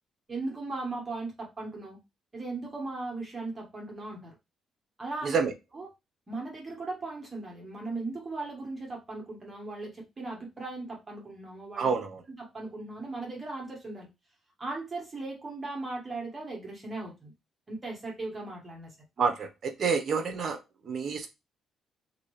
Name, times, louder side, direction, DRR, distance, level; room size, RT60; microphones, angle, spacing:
voice 1, 0.3-2.0 2.3-4.3 5.0-5.3 5.7-5.9 6.3-11.9 12.4-14.1 14.6-17.3 17.7-18.9, right 2 dB, 30° right, 1.5 m, -38 dB
voice 2, 5.2-5.5 11.8-12.2 19.2-20.6 20.8-21.3, right 5 dB, 50° right, 0.8 m, -28 dB
2.8 x 2.7 x 3.2 m
cardioid pair, 90°, 0 cm